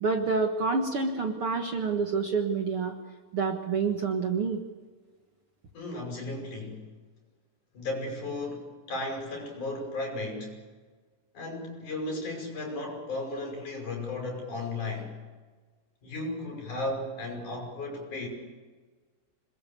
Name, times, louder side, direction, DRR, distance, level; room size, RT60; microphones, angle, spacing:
voice 1, 0.0-2.9 3.3-4.6, right 4 dB, 50° right, 3 dB, 2.1 m, -28 dB
voice 2, 5.7-6.9 7.7-10.6 11.3-15.1 16.0-18.3, left 2 dB, 60° left, 2 dB, 7.4 m, -35 dB
27.0 x 21.0 x 7.0 m, 1.4 s
omnidirectional pair, 3.9 m